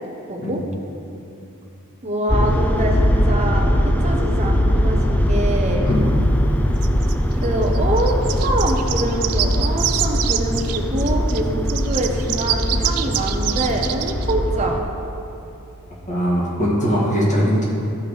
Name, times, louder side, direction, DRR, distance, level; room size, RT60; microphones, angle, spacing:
voice 1, 0.3-0.6 2.0-5.9 7.4-14.8, right 1 dB, 30° right, 1 dB, 0.8 m, -25 dB
sound 1, 2.3-14.8, equal, 5° left, 0.3 m, -20 dB
sound 2, 6.8-11.4 11.7-14.3, right 12 dB, 85° right, 0.4 m, -26 dB
voice 2, 16.1-17.6, equal, 35° left, -6 dB, 1.8 m, -20 dB
13.0 x 4.9 x 3.2 m, 2.8 s
head